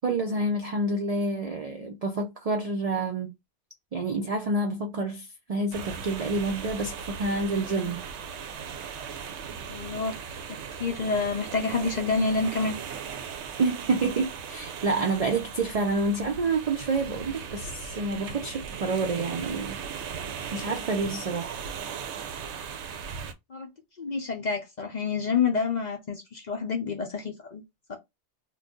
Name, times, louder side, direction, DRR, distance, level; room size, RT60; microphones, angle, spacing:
voice 1, 0.0-3.3 3.9-8.0 13.6-19.8 20.5-21.6, right 3 dB, 60° right, 0.4 m, -28 dB
Waves shore surf, 5.7-23.3, right 7 dB, 75° right, 0.8 m, -38 dB
voice 2, 9.7-10.2 10.5-12.7 23.5-23.7 24.0-27.6 27.9-28.0, left 4 dB, 50° left, 0.6 m, -28 dB
2.6 x 2.3 x 3.5 m
omnidirectional pair, 1.2 m